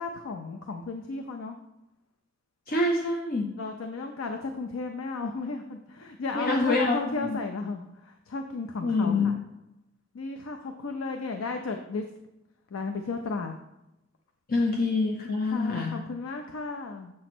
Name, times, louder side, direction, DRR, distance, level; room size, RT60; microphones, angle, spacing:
voice 1, 0.0-1.6 3.6-9.3 10.1-12.0 12.7-13.5 15.5-17.1, left 3 dB, 90° left, 5 dB, 0.5 m, -34 dB
voice 2, 2.7-3.5 6.3-7.4 8.8-9.4 14.5-16.0, left 3 dB, 45° left, 1 dB, 0.6 m, -26 dB
7.4 x 3.0 x 6.0 m, 0.91 s
head